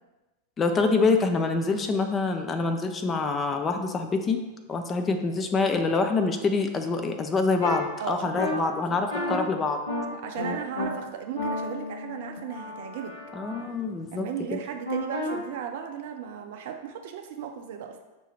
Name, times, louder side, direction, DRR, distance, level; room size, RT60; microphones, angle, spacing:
voice 1, 0.6-4.4 4.7-9.8 13.3-14.3 14.5-14.6, left 3 dB, 20° left, 6 dB, 0.4 m, -26 dB
sound 1, 7.6-7.8 8.4-8.5 9.1-9.4 9.9-10.0 10.4-10.9 11.4-13.6 14.9-15.4, left 2 dB, 70° left, 1.4 m, -32 dB
voice 2, 8.0-9.0 10.1-13.2 14.1-18.0, right 8 dB, 50° right, 5 dB, 0.5 m, -36 dB
6.0 x 2.7 x 3.2 m, 1.1 s
figure-of-eight pair, 90°, 0 cm